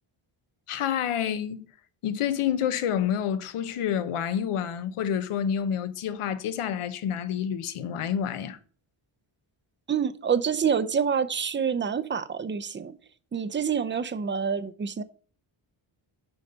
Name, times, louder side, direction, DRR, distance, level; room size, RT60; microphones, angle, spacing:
voice 1, 0.7-1.7 2.0-8.6, left 9 dB, 90° left, 0.9 m, -28 dB
voice 2, 9.9-12.9 13.3-15.0, right 7 dB, 25° right, 0.5 m, -27 dB
10.5 x 4.0 x 5.4 m
wide cardioid pair, 155°, 50 cm